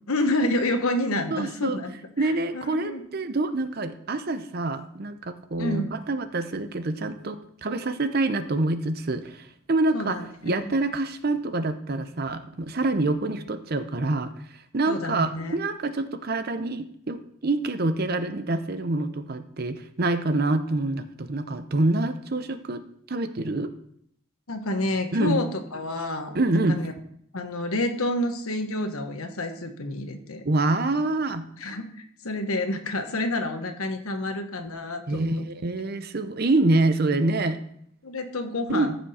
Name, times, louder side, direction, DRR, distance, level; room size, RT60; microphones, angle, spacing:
voice 1, 0.1-1.9 2.2-3.0 5.6-5.9 9.9-10.7 14.9-15.6 24.5-26.4 26.7-26.9 27.3-30.4 31.6-35.4 38.0-38.9, left 1 dB, 85° left, 6 dB, 1.3 m, -29 dB
voice 2, 1.3-1.8 2.2-10.2 10.4-14.3 14.7-22.8 23.1-23.7 25.1-25.4 26.3-26.8 30.4-31.5 35.1-37.6 38.7-39.0, right 2 dB, 45° right, 10 dB, 0.7 m, -26 dB
14.5 x 6.1 x 4.2 m, 0.69 s
head